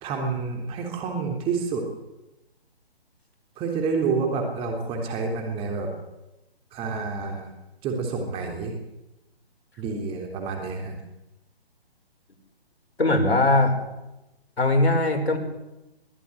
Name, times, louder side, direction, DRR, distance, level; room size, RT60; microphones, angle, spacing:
voice 1, 0.0-1.8 3.6-5.9 6.7-7.5 7.8-8.7 9.8-11.0, right 4 dB, 15° right, 3 dB, 3.4 m, -28 dB
voice 2, 13.0-13.8 14.6-15.4, left 2 dB, 80° left, 5 dB, 6.0 m, -20 dB
22.5 x 14.5 x 9.8 m, 0.96 s
figure-of-eight pair, 140°, 31 cm